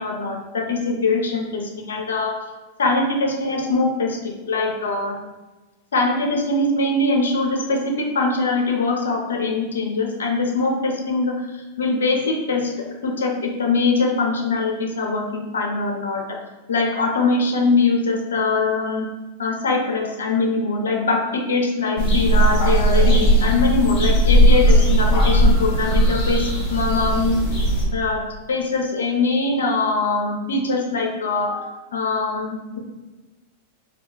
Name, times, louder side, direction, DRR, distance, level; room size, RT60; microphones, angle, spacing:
voice 1, 0.0-2.4 2.8-5.2 5.9-16.4 16.7-19.1 19.4-27.4 27.9-32.8, left 3 dB, 80° left, 1 dB, 0.5 m, -22 dB
sound 1, 22.0-27.8, right 1 dB, 45° left, 0.9 m, -17 dB
2.3 x 2.2 x 3.7 m, 1.2 s
hypercardioid pair, 100°, 0 cm